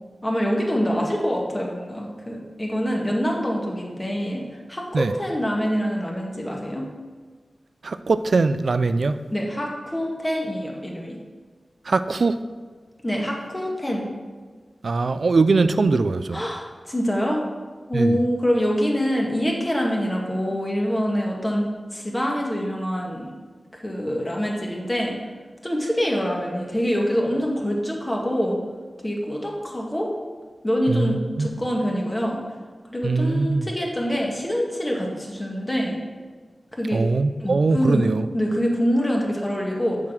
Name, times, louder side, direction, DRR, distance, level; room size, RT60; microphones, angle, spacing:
voice 1, 0.2-4.4 4.7-6.9 9.3-11.2 13.0-14.1 16.3-17.4 17.9-21.7 21.9-23.4 23.7-25.2 25.6-28.6 29.0-30.1 30.6-32.4 32.9-36.0 36.7-37.0 37.4-38.0 38.3-40.0, equal, 20° left, -1 dB, 1.7 m, -25 dB
voice 2, 7.8-9.2 11.9-12.4 14.8-16.4 17.9-18.2 30.9-31.5 33.0-33.7 36.9-38.3, right 3 dB, 70° right, 11 dB, 0.4 m, -21 dB
7.2 x 5.0 x 5.8 m, 1.5 s
wide cardioid pair, 65°, 0 cm